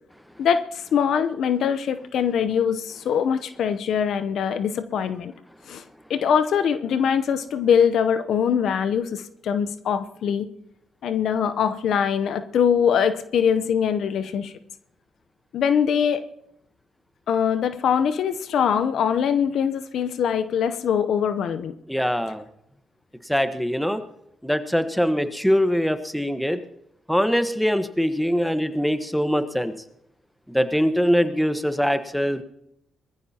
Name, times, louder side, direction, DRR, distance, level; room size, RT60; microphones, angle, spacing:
voice 1, 0.4-5.3 5.7-5.8 6.1-10.5 11.0-14.5 15.5-16.3 17.3-21.8, left 7 dB, 75° left, 12 dB, 0.7 m, -22 dB
voice 2, 21.9-22.4 23.3-24.0 24.4-26.6 27.1-29.7 30.5-32.4, equal, 5° left, 10 dB, 1.2 m, -22 dB
21.0 x 14.5 x 2.9 m, 0.80 s
supercardioid pair, 55°, 0 cm